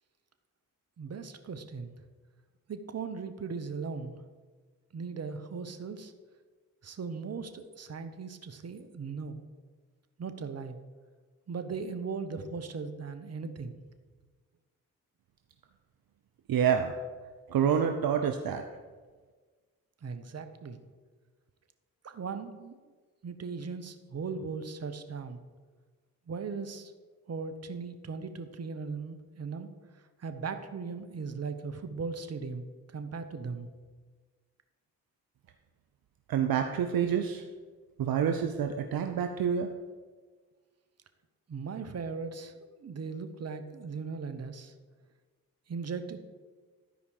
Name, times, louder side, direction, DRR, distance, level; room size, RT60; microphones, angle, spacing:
voice 1, 1.0-1.9 2.7-4.2 4.9-6.1 6.8-9.4 10.2-10.8 11.5-13.8 20.0-20.8 22.0-22.8 23.2-25.4 26.3-26.9 27.3-29.7 30.2-32.7 32.9-33.7 41.5-44.7 45.7-46.2, right 5 dB, 40° right, 9 dB, 1.0 m, -38 dB
voice 2, 16.5-16.9 17.5-18.6 36.3-37.4 38.0-39.7, right 8 dB, 60° right, 6 dB, 0.7 m, -27 dB
12.5 x 5.0 x 4.9 m, 1.4 s
hypercardioid pair, 40°, 40 cm